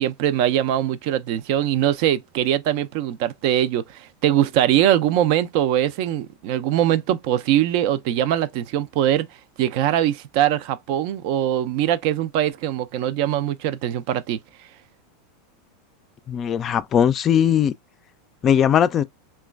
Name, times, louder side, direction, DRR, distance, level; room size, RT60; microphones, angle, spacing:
voice 1, 0.0-9.3 9.6-14.4, right 11 dB, 60° right, 0.4 m, -22 dB
voice 2, 16.3-17.7 18.4-19.0, left 9 dB, 35° left, 0.3 m, -19 dB
3.0 x 2.2 x 2.2 m
hypercardioid pair, 110°, 0 cm